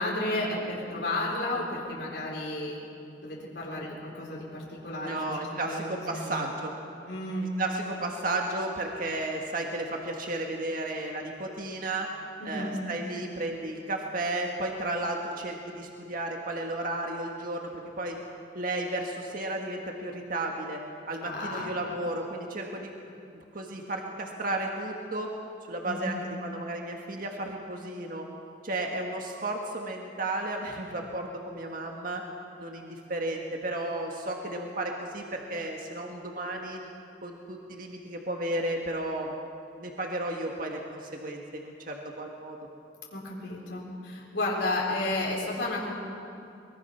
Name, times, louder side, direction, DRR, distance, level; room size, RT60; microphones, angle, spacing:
voice 1, 0.0-2.8 3.2-6.4 7.1-7.5 12.4-12.7 21.2-21.9 25.8-26.2 43.1-45.9, left 2 dB, 85° left, -3 dB, 4.4 m, -32 dB
voice 2, 4.9-6.7 7.6-12.1 12.4-18.2 18.5-22.9 23.3-25.3 25.7-28.3 28.6-32.2 32.6-36.8 37.2-39.4 39.7-42.6, right 2 dB, 50° right, 1 dB, 1.8 m, -33 dB
23.0 x 22.0 x 5.9 m, 2.6 s
head